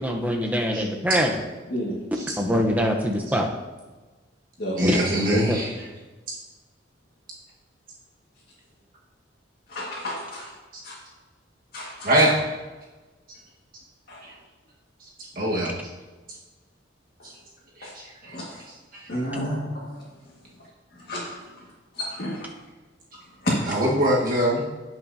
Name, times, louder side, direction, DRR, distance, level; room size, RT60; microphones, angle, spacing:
voice 1, 0.0-1.3 2.4-3.5 4.8-5.0 5.3-5.6, equal, 10° right, 2 dB, 0.8 m, -23 dB
voice 2, 4.7-5.7 12.0-12.4 14.2-14.3 15.0-15.1 15.3-15.9 17.2-17.3 17.8-18.3 18.9-19.1 23.7-24.6, right 1 dB, 50° right, -5 dB, 1.5 m, -23 dB
voice 3, 9.7-10.5 10.8-10.9 11.7-12.3 14.1-14.2 17.2-17.3 17.8-17.9 18.2-18.6 19.1-20.0 20.9-21.7 21.9-22.5 23.4-23.5, equal, 50° left, -6 dB, 1.8 m, -31 dB
16.5 x 5.8 x 2.7 m, 1.2 s
head